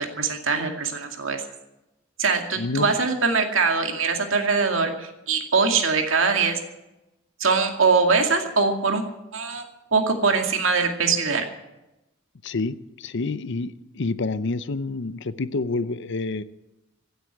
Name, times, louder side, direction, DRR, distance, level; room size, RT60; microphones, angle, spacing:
voice 1, 0.0-1.4 2.2-6.6 7.4-9.0 9.3-9.6 9.9-11.4, right 4 dB, 70° right, 4 dB, 2.3 m, -22 dB
voice 2, 2.6-2.9 12.4-16.4, left 3 dB, 60° left, 15 dB, 0.7 m, -28 dB
16.0 x 8.1 x 9.9 m, 0.96 s
head